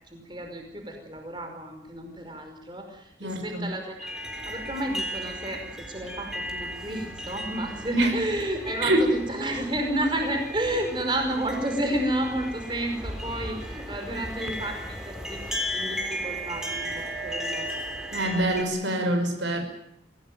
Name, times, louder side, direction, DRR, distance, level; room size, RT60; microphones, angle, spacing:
voice 1, 0.1-4.2 4.5-17.7, right 1 dB, 25° right, 4 dB, 5.2 m, -31 dB
voice 2, 3.2-3.7 7.9-8.2 8.8-9.1 18.1-19.6, right 1 dB, 90° right, 6 dB, 6.0 m, -25 dB
sound 1, 4.0-18.6, equal, 5° right, 3.5 m, -35 dB
25.5 x 18.0 x 9.4 m, 0.73 s
head